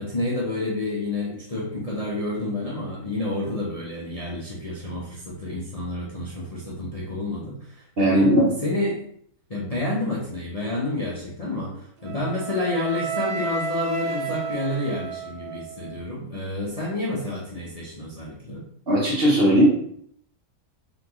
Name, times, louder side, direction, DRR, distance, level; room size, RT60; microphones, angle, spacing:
voice 1, 0.0-8.3 8.6-9.0 9.5-18.6, left 2 dB, 30° left, -5 dB, 0.8 m, -29 dB
voice 2, 8.0-8.5 18.9-19.7, equal, 45° right, -3 dB, 1.1 m, -18 dB
Wind instrument woodwind instrument, 12.0-16.1, right 4 dB, 80° right, 1.3 m, -31 dB
4.2 x 3.9 x 3.0 m, 0.66 s
omnidirectional pair, 1.6 m